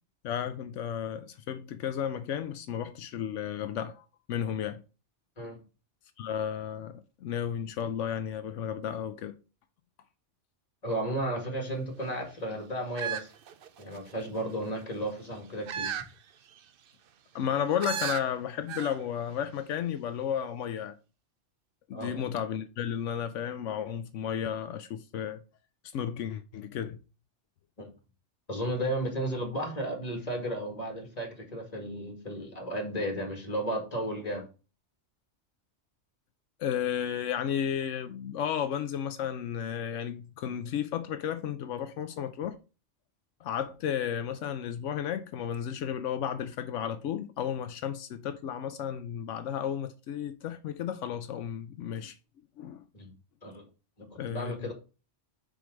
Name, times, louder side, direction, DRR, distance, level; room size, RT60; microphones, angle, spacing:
voice 1, 0.2-4.8 6.2-9.4 17.3-20.9 21.9-25.4 25.9-27.0 36.6-42.6 43.4-52.1 52.6-52.8 54.1-54.7, left 9 dB, 85° left, 0.9 m, -33 dB
voice 2, 10.8-13.3 13.8-16.0 21.9-22.3 27.8-27.9 28.5-34.5 52.9-53.1 53.4-53.6 54.0-54.7, right 1 dB, 35° left, 2.1 m, -34 dB
sound 1, 13.0-14.1 15.7-16.1 16.5-16.6 17.8-18.2 18.7-19.0 19.3-19.4, right 8 dB, 55° right, 0.7 m, -34 dB
5.1 x 4.6 x 6.2 m
omnidirectional pair, 1.2 m